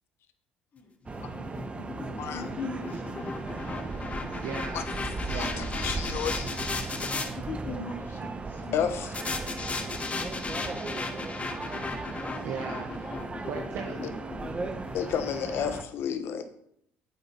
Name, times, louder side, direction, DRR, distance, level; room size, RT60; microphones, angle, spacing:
sound 1, 1.1-7.3 9.1-15.4, left 4 dB, 30° left, 1.4 m, -36 dB
sound 2, 1.1-15.8, right 3 dB, 25° right, 1.1 m, -37 dB
voice 1, 2.2-3.8 7.3-9.1 9.6-10.8, left 3 dB, 45° left, 0 dB, 2.4 m, -42 dB
voice 2, 4.4-4.9 5.1-5.7 12.4-13.1 13.5-14.1, right 6 dB, 65° right, 3 dB, 1.1 m, -38 dB
voice 3, 5.3-6.7 8.7-9.1 14.9-16.4, left 8 dB, 65° left, 9 dB, 1.1 m, -31 dB
9.4 x 8.1 x 4.2 m, 0.71 s
supercardioid pair, 70°, 5 cm